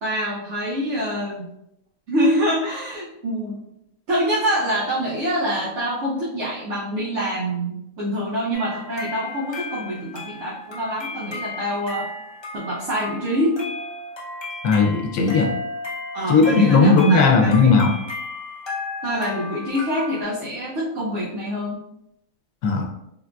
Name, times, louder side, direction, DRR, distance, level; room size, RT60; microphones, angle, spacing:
voice 1, 0.0-1.5 2.1-3.6 4.1-12.1 12.5-13.6 16.1-17.7 19.0-21.8, equal, 65° right, -6 dB, 0.9 m, -25 dB
sound 1, 8.5-20.2, left 2 dB, 35° left, 0.4 m, -34 dB
voice 2, 14.6-15.5 16.3-17.9 22.6-22.8, left 4 dB, 80° left, 2 dB, 1.0 m, -16 dB
3.7 x 2.4 x 2.2 m, 0.82 s
omnidirectional pair, 1.4 m